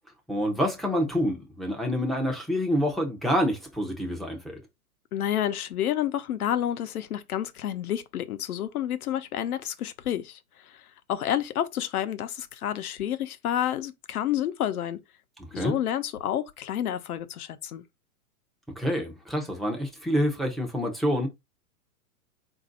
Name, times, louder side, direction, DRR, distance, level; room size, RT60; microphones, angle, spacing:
voice 1, 0.3-4.6 15.4-15.8 18.8-21.3, equal, ahead, 0.5 m, -27 dB
voice 2, 5.1-15.0 15.5-17.8, left 11 dB, 75° left, 0.8 m, -29 dB
4.1 x 2.6 x 3.8 m
hypercardioid pair, 125°, 45 cm